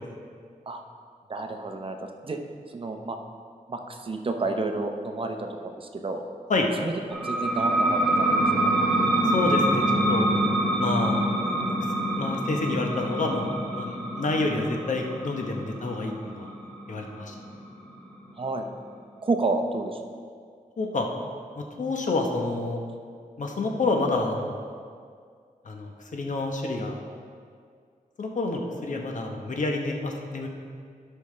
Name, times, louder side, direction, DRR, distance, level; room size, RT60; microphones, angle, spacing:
voice 1, 1.3-2.4 2.7-3.2 3.7-6.2 6.8-8.3 8.6-8.7 18.4-18.7 19.2-20.0, right 3 dB, 40° right, 5 dB, 0.7 m, -30 dB
sound 1, 7.1-18.4, right 1 dB, 5° left, 1.8 m, -26 dB
voice 2, 9.3-10.3 10.8-11.2 11.6-11.7 12.2-16.5 16.9-17.3 20.8-21.1 21.5-22.8 23.4-24.6 25.6-27.0 28.2-30.5, left 2 dB, 60° left, 2 dB, 0.9 m, -28 dB
12.0 x 5.6 x 3.2 m, 2.1 s
wide cardioid pair, 110°, 14 cm